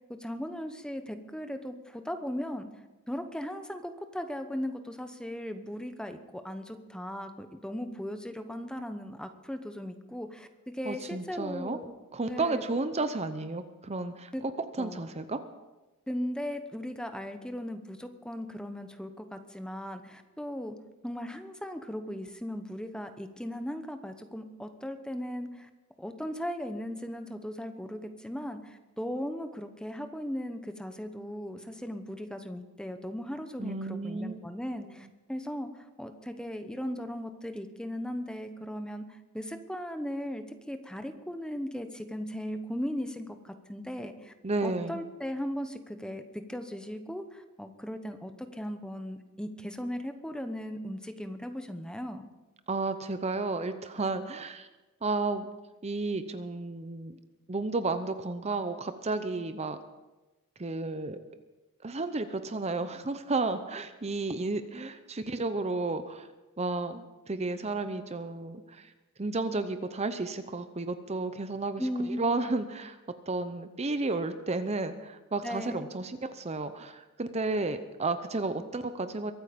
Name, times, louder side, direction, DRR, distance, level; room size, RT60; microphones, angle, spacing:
voice 1, 0.1-2.7 3.1-10.5 10.7-12.0 12.3-12.6 14.3-14.4 14.8-15.0 16.1-20.8 21.0-25.7 26.0-44.3 44.6-52.3 71.8-72.2 75.4-75.8, equal, 5° left, 8 dB, 0.9 m, -37 dB
voice 2, 10.8-11.8 12.1-14.5 14.8-15.4 33.6-34.5 44.4-45.0 52.7-54.7 55.0-55.5 55.8-57.2 57.5-59.8 60.6-61.2 61.8-66.3 66.6-68.9 69.2-73.0 73.3-79.3, right 3 dB, 30° right, 10 dB, 0.7 m, -32 dB
23.0 x 9.1 x 5.2 m, 1.1 s
head